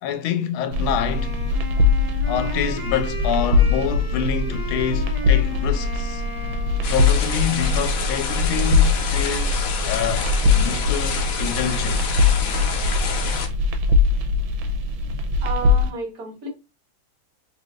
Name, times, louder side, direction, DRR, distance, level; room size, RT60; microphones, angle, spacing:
voice 1, 0.0-1.4 2.3-6.2 6.9-12.1, left 8 dB, 85° left, 1.4 m, -27 dB
sound 1, 0.7-15.9, left 3 dB, 75° right, 1.4 m, -21 dB
Wind instrument woodwind instrument, 1.1-7.3, left 1 dB, 25° left, 1.3 m, -35 dB
sound 2, 6.8-13.5, left 5 dB, 65° left, 0.8 m, -28 dB
voice 2, 15.4-16.5, right 4 dB, 50° right, 1.5 m, -31 dB
4.0 x 3.3 x 2.4 m
omnidirectional pair, 2.3 m